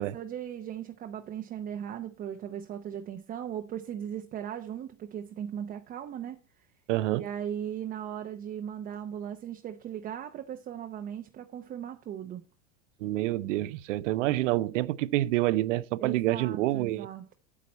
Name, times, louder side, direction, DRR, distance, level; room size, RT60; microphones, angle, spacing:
voice 1, 0.0-6.4 7.1-12.4 16.0-17.3, right 9 dB, 25° right, 0.7 m, -38 dB
voice 2, 6.9-7.2 13.0-17.1, right 16 dB, 80° right, 0.7 m, -27 dB
8.8 x 8.2 x 4.2 m
supercardioid pair, 145°, 36 cm